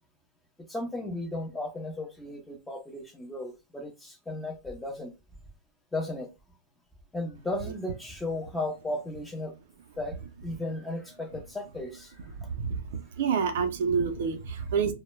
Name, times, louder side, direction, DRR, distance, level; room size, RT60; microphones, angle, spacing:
voice 1, 0.7-5.1 5.9-6.3 7.1-9.5 10.0-12.2, left 2 dB, 5° left, 0.6 m, -35 dB
voice 2, 13.2-14.9, right 6 dB, 65° right, 0.5 m, -27 dB
2.1 x 2.0 x 3.1 m
hypercardioid pair, 140°, 0 cm